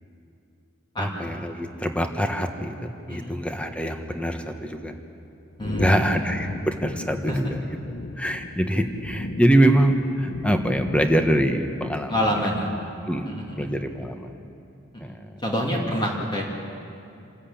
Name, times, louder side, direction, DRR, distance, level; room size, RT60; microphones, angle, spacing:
voice 1, 1.0-4.9 5.8-7.8 8.2-12.4 13.1-13.3 13.5-14.4 15.0-15.4 15.8-15.9, right 1 dB, 5° left, 5 dB, 1.3 m, -24 dB
sound 1, 5.6-12.4, left 2 dB, 55° left, 0.7 m, -37 dB
voice 2, 5.6-6.1 7.3-7.4 12.1-12.7 13.3-13.7 14.9-15.1 15.4-16.4, equal, 25° left, -2 dB, 2.7 m, -27 dB
27.5 x 13.5 x 8.7 m, 2.6 s
head